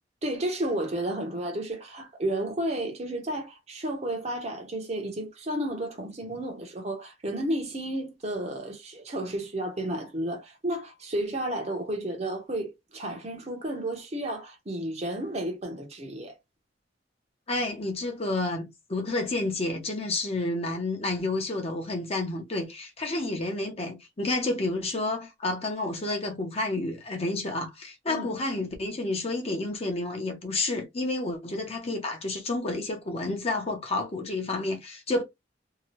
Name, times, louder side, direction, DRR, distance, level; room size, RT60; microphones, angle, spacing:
voice 1, 0.2-16.4 28.1-28.3, right 1 dB, 35° right, 0.8 m, -32 dB
voice 2, 17.5-35.2, left 2 dB, 35° left, 0.8 m, -30 dB
2.8 x 2.3 x 2.9 m
head